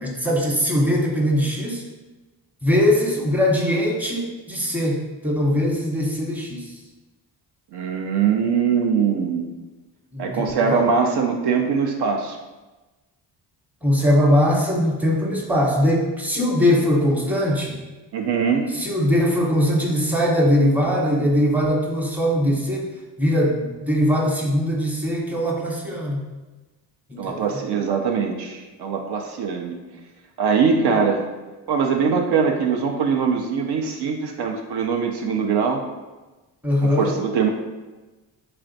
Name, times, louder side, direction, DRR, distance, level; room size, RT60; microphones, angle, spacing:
voice 1, 0.0-1.8 2.6-6.7 10.1-10.9 13.8-17.7 18.7-22.9 23.2-26.3 27.1-27.6 36.6-37.1, equal, 5° right, -2 dB, 0.8 m, -21 dB
voice 2, 7.7-9.5 10.2-12.4 18.1-18.7 27.2-29.8 30.4-31.3 31.7-35.8 36.8-37.5, right 6 dB, 65° right, 2 dB, 0.5 m, -22 dB
3.3 x 2.4 x 3.9 m, 1.2 s
cardioid pair, 65°, 42 cm